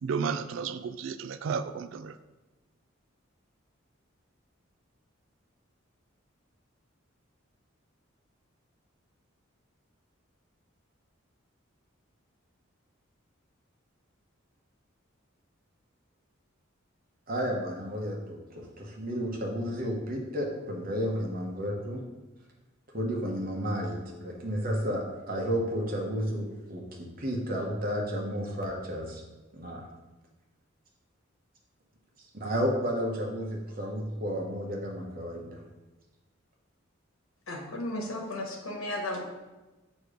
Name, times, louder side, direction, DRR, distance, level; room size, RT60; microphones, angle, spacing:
voice 1, 0.0-2.2, right 5 dB, 70° right, 13 dB, 0.3 m, -32 dB
voice 2, 17.3-18.2 18.5-22.0 22.9-29.2 29.5-29.8 32.3-35.6, equal, 45° right, 0 dB, 1.1 m, -32 dB
voice 3, 37.5-39.2, left 1 dB, 85° left, 0 dB, 1.2 m, -34 dB
6.7 x 3.1 x 5.0 m, 1.1 s
head